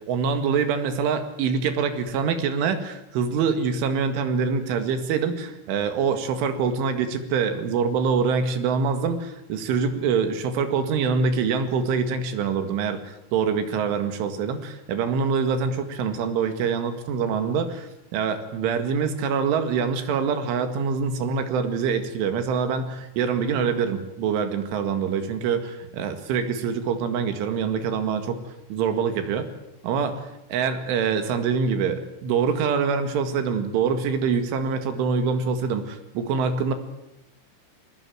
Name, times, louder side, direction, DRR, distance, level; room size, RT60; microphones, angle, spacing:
voice 1, 0.1-28.4 28.7-29.5 29.8-36.7, right 6 dB, 75° right, 9 dB, 4.3 m, -25 dB
23.0 x 19.0 x 9.4 m, 0.85 s
omnidirectional pair, 5.9 m